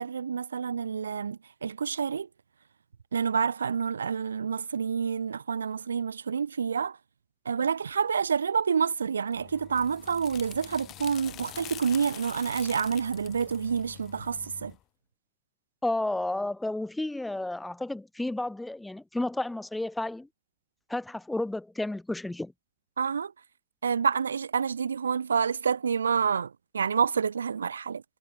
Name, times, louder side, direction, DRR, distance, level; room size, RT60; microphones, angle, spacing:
voice 1, 0.0-2.3 3.1-7.0 7.5-14.7 23.0-23.3 23.8-28.0, right 6 dB, 70° right, 0.6 m, -28 dB
sound 1, 9.3-14.8, left 14 dB, 35° left, 3.1 m, -45 dB
voice 2, 15.8-20.3 20.9-22.5, left 2 dB, 5° left, 0.9 m, -32 dB
figure-of-eight pair, 90°, 0 cm